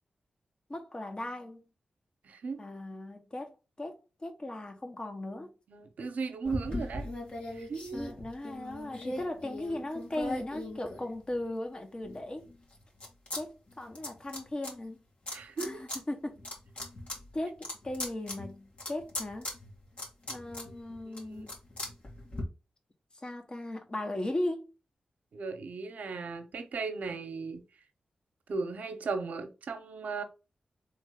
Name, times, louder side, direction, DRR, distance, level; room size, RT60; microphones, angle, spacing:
voice 1, 0.7-1.6 2.6-5.5 6.7-6.8 7.9-12.5 13.3-15.0 15.6-16.4 17.3-19.5 20.3-21.5 23.2-24.7, left 1 dB, 35° left, 1.2 m, -37 dB
voice 2, 2.2-2.6 5.7-7.1 7.5-8.0 15.3-15.8 21.0-21.5 25.3-27.6 28.5-30.2, right 4 dB, 75° right, 0.8 m, -37 dB
sound 1, 6.4-11.5 12.0-13.4 13.7-14.7 15.3-16.0 16.3-22.4, left 1 dB, 55° left, 1.9 m, -40 dB
3.5 x 3.3 x 3.6 m
cardioid pair, 40°, 3 cm